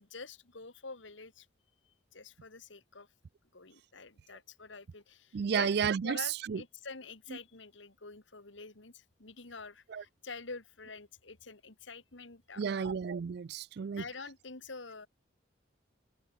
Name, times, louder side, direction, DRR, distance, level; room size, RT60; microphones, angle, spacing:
voice 1, 0.0-1.5 1.9-3.1 3.5-5.7 6.0-13.0 14.0-15.1, left 4 dB, 75° left, 2.1 m, -47 dB
voice 2, 5.3-6.2 6.5-6.6 9.9-10.0 12.6-14.0, right 6 dB, 55° right, 0.4 m, -32 dB
head